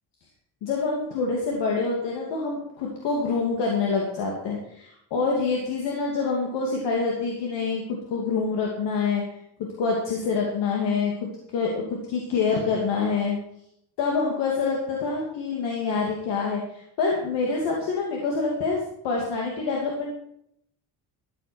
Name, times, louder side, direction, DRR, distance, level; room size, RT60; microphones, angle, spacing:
voice 1, 0.6-13.4 14.0-20.1, left 4 dB, 80° left, -1 dB, 2.8 m, -26 dB
14.0 x 8.3 x 6.2 m, 0.74 s
cardioid pair, 170°, 41 cm